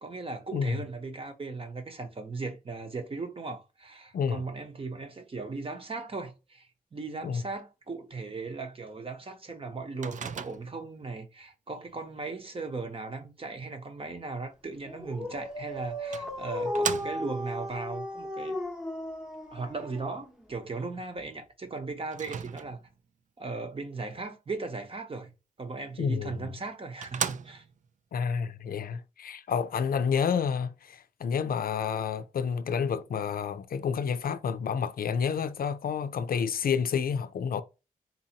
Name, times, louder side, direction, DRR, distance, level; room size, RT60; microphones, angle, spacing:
voice 1, 0.0-18.6 19.5-22.8 23.4-25.3 25.6-27.6, right 3 dB, 35° right, 0.9 m, -37 dB
voice 2, 0.5-0.8 4.1-4.4 7.2-7.4 26.0-26.5 28.1-37.6, left 6 dB, 70° left, 0.5 m, -29 dB
Microwave oven, 10.0-10.9 15.3-15.4 16.1-17.5 22.1-23.0 26.1-26.2 26.6-26.7 27.0-27.9, right 7 dB, 55° right, 0.4 m, -36 dB
Dog, 14.8-20.5, left 1 dB, 5° right, 0.9 m, -35 dB
4.0 x 2.7 x 2.8 m
wide cardioid pair, 100°, 15 cm